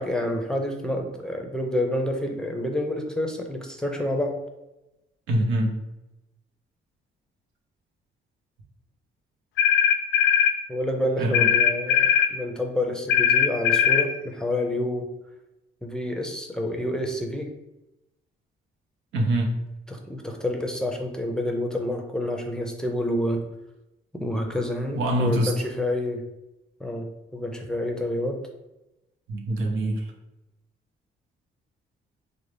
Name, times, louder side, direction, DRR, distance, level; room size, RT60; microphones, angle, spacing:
voice 1, 0.0-4.3 10.7-15.1 15.8-17.5 19.9-23.4 24.1-26.2 26.8-28.4, left 1 dB, 5° left, 2 dB, 0.5 m, -28 dB
voice 2, 5.3-5.7 11.2-11.5 19.1-19.5 24.9-25.5 29.3-30.1, right 1 dB, 85° right, 0 dB, 0.8 m, -24 dB
sound 1, 9.6-10.6 11.3-12.3 13.1-14.1, left 9 dB, 75° left, 0.4 m, -19 dB
3.8 x 2.1 x 3.3 m, 0.95 s
cardioid pair, 90°, 20 cm